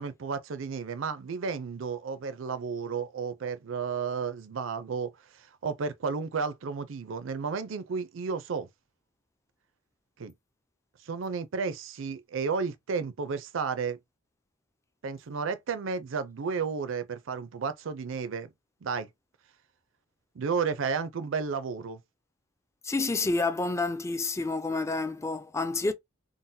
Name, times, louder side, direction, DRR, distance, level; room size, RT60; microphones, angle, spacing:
voice 1, 0.0-8.7 10.2-10.3 11.0-14.0 15.0-18.5 18.8-19.1 20.3-22.0, right 5 dB, 75° right, 0.5 m, -32 dB
voice 2, 22.8-25.9, left 3 dB, 15° left, 0.3 m, -29 dB
3.8 x 2.0 x 2.6 m
head